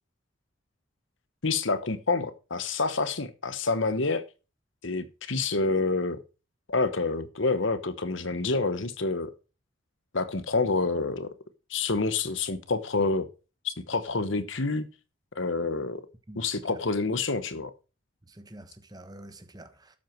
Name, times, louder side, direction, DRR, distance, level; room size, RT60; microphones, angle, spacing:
voice 1, 1.4-4.2 4.8-6.2 6.7-9.3 10.1-11.3 11.7-13.3 13.6-14.9 15.3-16.0 16.4-17.7, left 3 dB, 70° left, 1.1 m, -28 dB
voice 2, 16.3-16.8 18.3-20.0, right 1 dB, 20° right, 1.2 m, -47 dB
12.5 x 7.9 x 4.6 m
head